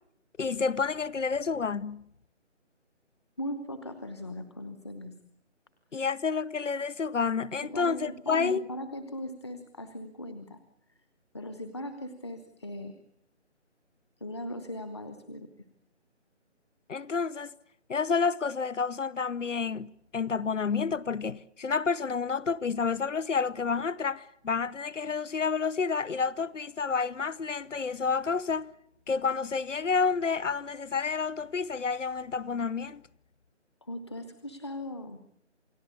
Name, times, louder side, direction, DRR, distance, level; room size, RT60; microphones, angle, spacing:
voice 1, 0.4-2.1 5.9-8.7 16.9-17.5 17.9-28.7 29.1-33.0, left 5 dB, 85° left, 1.0 m, -29 dB
voice 2, 3.4-5.1 7.6-10.6 11.3-13.0 14.2-15.5 33.8-35.2, left 1 dB, 20° left, 1.1 m, -39 dB
28.5 x 18.5 x 8.4 m
figure-of-eight pair, 175°, 36 cm